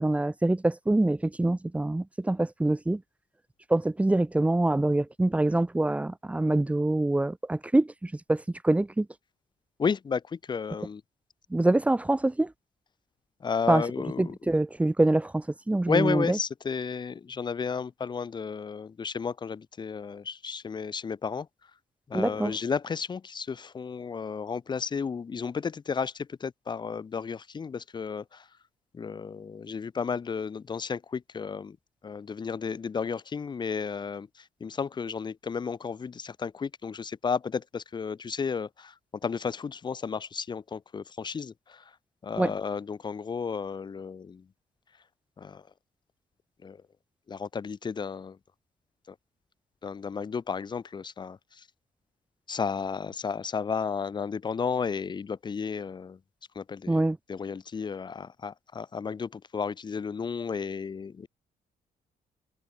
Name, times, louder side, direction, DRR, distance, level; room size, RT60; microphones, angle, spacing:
voice 1, 0.0-3.0 3.7-9.1 11.5-12.5 13.7-13.8 14.2-16.4 22.1-22.5 42.4-42.5 56.9-57.2, right 2 dB, 10° right, 2.8 m, -25 dB
voice 2, 9.8-11.0 13.4-14.3 15.9-21.5 22.1-28.4 28.9-31.8 32.0-38.9 39.2-41.8 42.2-44.4 45.4-45.6 46.6-46.8 47.3-48.4 49.1-49.2 49.8-51.6 52.5-56.2 56.5-61.3, left 6 dB, 30° left, 3.4 m, -33 dB
cardioid pair, 180°, 16 cm